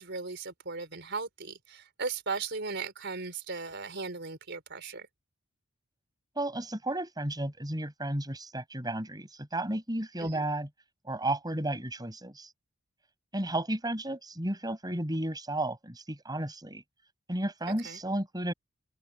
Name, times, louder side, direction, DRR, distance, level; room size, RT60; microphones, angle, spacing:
voice 1, 0.0-5.1 10.2-10.4 17.8-18.0, right 4 dB, 60° right, 4.6 m, -37 dB
voice 2, 6.4-10.7 11.0-12.5 13.3-16.8 17.3-18.5, right 1 dB, 20° right, 6.1 m, -33 dB
open air
head